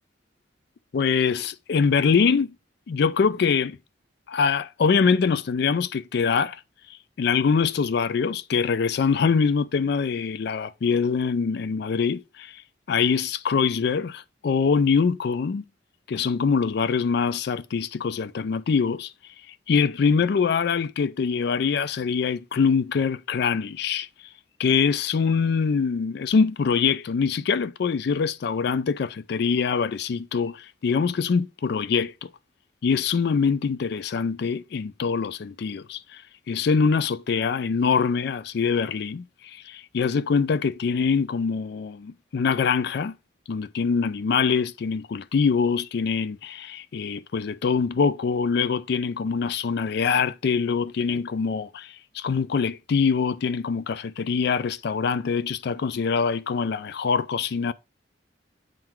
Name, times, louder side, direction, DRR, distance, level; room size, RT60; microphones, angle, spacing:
voice 1, 0.9-2.5 2.9-3.8 4.3-6.6 7.2-12.6 12.9-15.6 16.1-19.1 19.5-24.1 24.6-32.3 32.8-36.2 36.5-43.1 43.5-57.7, left 5 dB, 60° left, 0.4 m, -24 dB
9.0 x 3.8 x 4.4 m
head